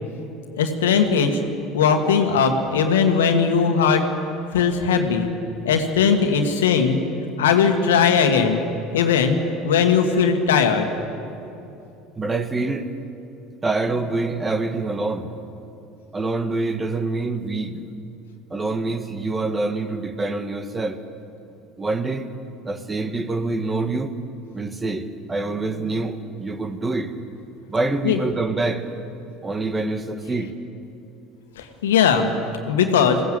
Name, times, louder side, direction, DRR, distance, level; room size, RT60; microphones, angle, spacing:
voice 1, 0.6-1.4 1.7-4.0 4.5-5.3 5.7-7.0 7.4-8.6 8.9-9.4 9.6-10.9 28.0-28.2 31.6-32.3 32.7-33.2, left 6 dB, 80° left, 5 dB, 1.7 m, -19 dB
voice 2, 12.1-12.9 13.6-15.3 16.1-17.8 18.5-21.0 21.8-22.3 22.6-24.1 24.5-27.1 27.7-28.8 29.4-30.5 32.9-33.0, right 3 dB, 20° right, 9 dB, 1.5 m, -26 dB
21.0 x 16.0 x 7.8 m, 2.7 s
hypercardioid pair, 75°, 0 cm